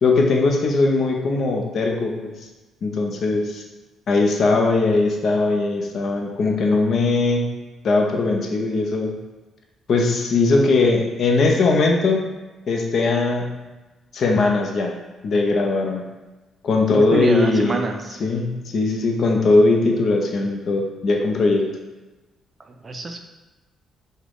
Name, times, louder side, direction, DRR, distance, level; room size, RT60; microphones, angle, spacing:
voice 1, 0.0-2.3 2.8-3.6 4.1-7.5 7.8-9.2 9.9-12.2 12.7-13.6 14.1-14.9 15.2-16.0 16.6-17.8 18.2-21.7, left 3 dB, 60° left, 2 dB, 0.5 m, -19 dB
voice 2, 17.0-18.2 22.6-23.2, right 3 dB, 30° right, 5 dB, 0.3 m, -26 dB
3.5 x 2.1 x 3.4 m, 1.1 s
cardioid pair, 90°, 0 cm